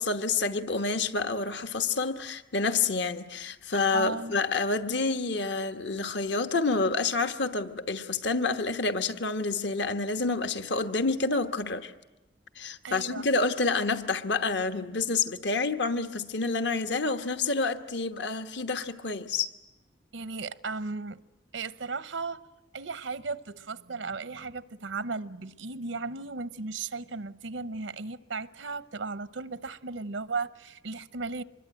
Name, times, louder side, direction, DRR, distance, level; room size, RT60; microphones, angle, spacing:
voice 1, 0.0-11.9 12.6-19.5, left 3 dB, 70° left, 1.2 m, -28 dB
voice 2, 3.9-4.4 12.8-13.2 20.1-21.2 21.5-22.5 22.7-31.4, right 4 dB, 85° right, 0.8 m, -35 dB
25.5 x 21.5 x 8.9 m
head